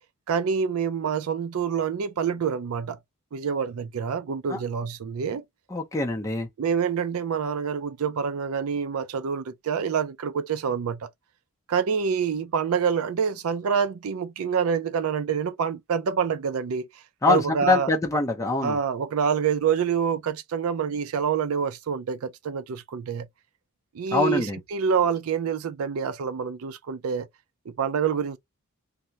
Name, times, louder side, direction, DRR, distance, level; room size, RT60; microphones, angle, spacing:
voice 1, 0.3-3.0 3.3-5.4 6.6-11.1 11.7-17.9 18.6-23.3 23.9-27.3 27.7-28.4, right 6 dB, 75° right, 0.4 m, -27 dB
voice 2, 5.7-6.5 17.2-18.8 24.1-24.6, left 3 dB, 15° left, 0.5 m, -24 dB
3.4 x 2.1 x 2.7 m
head